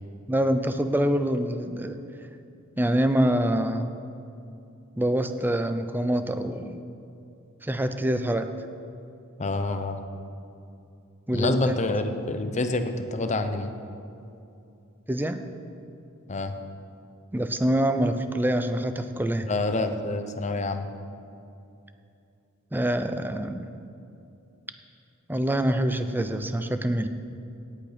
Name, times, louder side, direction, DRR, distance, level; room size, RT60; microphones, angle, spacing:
voice 1, 0.3-2.0 2.8-3.9 5.0-6.8 7.6-8.5 11.3-11.8 15.1-15.4 17.3-19.5 22.7-23.7 25.3-27.1, right 1 dB, 10° right, 8 dB, 0.6 m, -25 dB
voice 2, 9.4-10.0 11.3-13.7 16.3-16.5 19.5-20.9, left 2 dB, 35° left, 7 dB, 0.8 m, -27 dB
17.0 x 8.7 x 5.1 m, 2.7 s
head